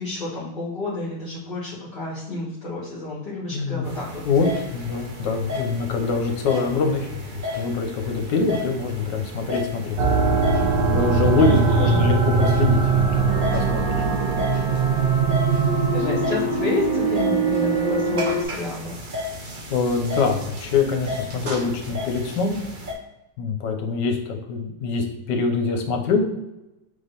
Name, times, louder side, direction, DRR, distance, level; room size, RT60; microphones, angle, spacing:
voice 1, 0.0-4.1 11.4-12.0 15.9-19.0, left 2 dB, 30° left, -11 dB, 1.6 m, -30 dB
voice 2, 3.5-3.9 4.2-7.3 7.5-10.0 10.8-12.8 13.1-14.0 19.7-22.6 23.4-26.3, left 4 dB, 75° left, 3 dB, 1.4 m, -24 dB
sound 1, 3.8-22.9, left 2 dB, 50° right, 0.5 m, -34 dB
sound 2, 10.0-18.4, right 4 dB, 70° right, 1.1 m, -21 dB
3.8 x 3.1 x 3.9 m, 0.96 s
omnidirectional pair, 2.0 m